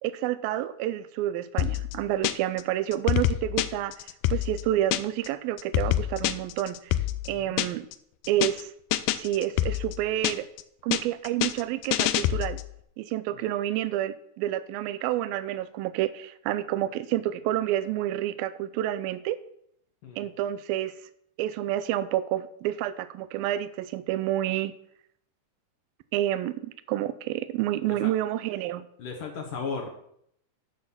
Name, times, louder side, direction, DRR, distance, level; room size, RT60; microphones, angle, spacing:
voice 1, 0.0-4.0 4.3-6.9 7.3-7.9 8.3-8.7 9.2-10.5 10.8-12.6 13.0-19.4 20.2-20.9 21.4-24.7 26.1-28.9, right 13 dB, 85° right, 14 dB, 2.4 m, -29 dB
sound 1, 1.6-2.6 2.9-5.3 5.6-7.9 8.2-8.6 8.9-10.6 10.9-12.7, left 13 dB, 85° left, 1.9 m, -27 dB
voice 2, 29.0-29.9, left 5 dB, 65° left, 0 dB, 2.8 m, -36 dB
11.0 x 6.3 x 7.2 m, 0.71 s
omnidirectional pair, 4.3 m